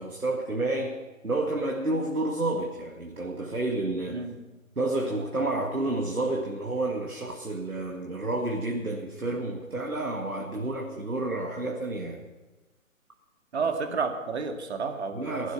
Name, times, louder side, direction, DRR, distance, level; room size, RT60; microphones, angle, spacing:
voice 1, 0.0-4.2 4.8-12.3 13.6-13.7 15.1-15.5, right 2 dB, 90° right, 0 dB, 2.1 m, -30 dB
voice 2, 13.5-15.5, right 5 dB, 50° right, 4 dB, 2.2 m, -31 dB
18.0 x 11.5 x 6.0 m, 1.2 s
figure-of-eight pair, 140°, 42 cm